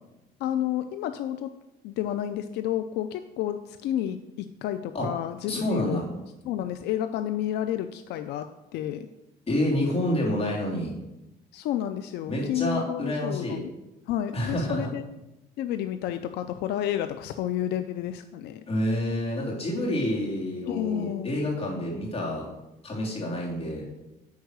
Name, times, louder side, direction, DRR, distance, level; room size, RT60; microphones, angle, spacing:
voice 1, 0.4-1.6 1.8-6.0 6.4-9.1 11.5-13.7 14.1-15.0 15.6-18.6 20.7-21.4, left 11 dB, 80° left, 10 dB, 0.5 m, -30 dB
voice 2, 5.5-6.1 9.5-10.9 12.3-13.6 14.3-14.9 18.7-22.5 22.8-23.8, left 1 dB, 35° left, -3 dB, 3.4 m, -28 dB
9.5 x 4.6 x 6.5 m, 0.96 s
cardioid pair, 110°, 17 cm